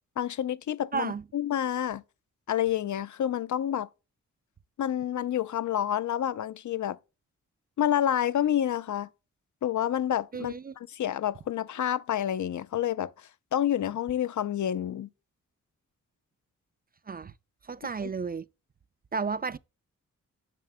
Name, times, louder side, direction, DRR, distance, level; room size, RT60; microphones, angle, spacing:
voice 1, 0.2-2.0 2.5-3.9 4.8-7.0 7.8-9.1 9.6-13.1 13.5-15.1 18.0-18.1, left 10 dB, 60° left, 0.6 m, -28 dB
voice 2, 0.9-1.2 10.3-10.7 17.1-17.3 17.7-18.4 19.1-19.6, right 5 dB, 30° right, 0.4 m, -32 dB
9.2 x 6.4 x 2.2 m
supercardioid pair, 45°, 34 cm